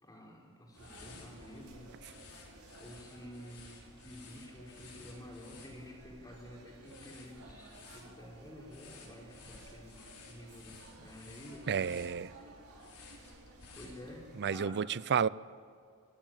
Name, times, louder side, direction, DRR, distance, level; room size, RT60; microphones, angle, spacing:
voice 1, 0.0-2.0 2.8-11.9 12.3-12.6 12.9-13.1 13.7-14.9, equal, 15° left, 4.6 m, -51 dB
sound 1, 0.7-14.4, left 4 dB, 75° left, 5.2 m, -56 dB
sound 2, 0.7-14.4, right 2 dB, 75° right, 4.4 m, -56 dB
voice 2, 11.7-12.3 14.4-15.3, right 7 dB, 50° right, 0.5 m, -31 dB
24.0 x 14.5 x 9.0 m
head